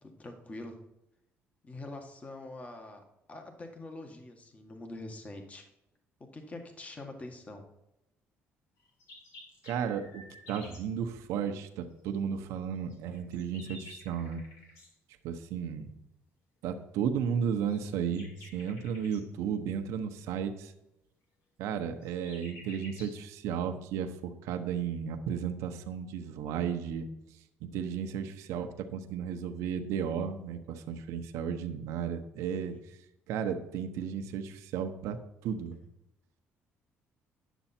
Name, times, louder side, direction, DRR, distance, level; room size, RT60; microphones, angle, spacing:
voice 1, 0.0-0.8 1.6-5.7 6.3-7.6 32.6-32.8 35.7-35.8, left 2 dB, 30° left, 4 dB, 1.6 m, -45 dB
sound 1, 8.8-10.9 12.9-14.9 17.6-19.2 21.6-23.2, left 2 dB, 85° left, 2.8 m, -52 dB
voice 2, 9.6-14.4 15.2-15.9 16.6-20.7 21.6-27.1 27.6-32.7 33.3-35.2 35.4-35.8, right 7 dB, 85° right, 6 dB, 0.8 m, -34 dB
10.0 x 6.9 x 4.3 m, 0.87 s
cardioid pair, 95°, 5 cm